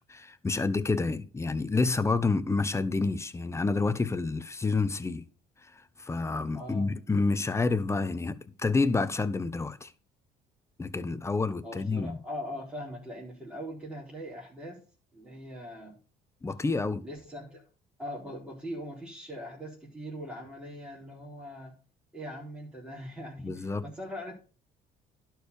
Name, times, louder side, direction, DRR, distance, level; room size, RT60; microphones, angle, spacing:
voice 1, 0.1-5.3 5.8-9.9 10.8-12.2 16.4-17.0 23.4-23.8, left 3 dB, 15° left, 0.9 m, -29 dB
voice 2, 6.5-6.9 11.6-14.8 15.1-16.0 17.0-17.6 18.0-21.7 22.1-24.4, equal, 5° right, 4.1 m, -41 dB
11.5 x 4.7 x 6.7 m
cardioid pair, 110°, 17 cm